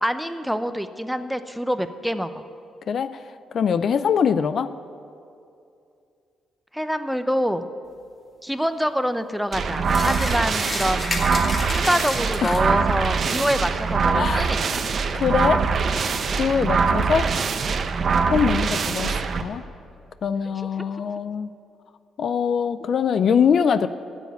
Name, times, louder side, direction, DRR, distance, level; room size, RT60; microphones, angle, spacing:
voice 1, 0.0-2.4 6.7-7.7 8.4-11.3 11.7-14.6, equal, ahead, 10 dB, 0.6 m, -25 dB
voice 2, 3.5-4.7 12.4-12.7 14.1-14.5 15.1-15.6 16.4-17.3 18.3-19.6 20.2-21.5 22.2-23.9, left 7 dB, 55° left, 13 dB, 0.4 m, -22 dB
sound 1, 9.5-19.4, right 5 dB, 50° right, 0.7 m, -23 dB
sound 2, 9.9-12.8, left 2 dB, 30° left, 1.8 m, -31 dB
12.5 x 7.2 x 9.3 m, 2.5 s
cardioid pair, 90°, 0 cm